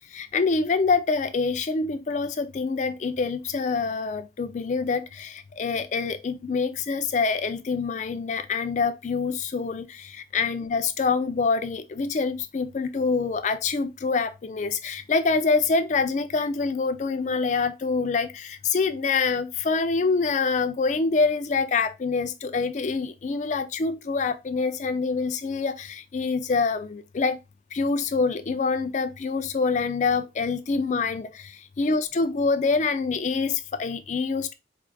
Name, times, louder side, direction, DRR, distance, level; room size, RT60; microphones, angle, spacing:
voice 1, 0.1-27.4 27.7-31.4 31.8-34.5, left 4 dB, 40° left, 0.4 m, -26 dB
4.6 x 2.5 x 2.3 m
head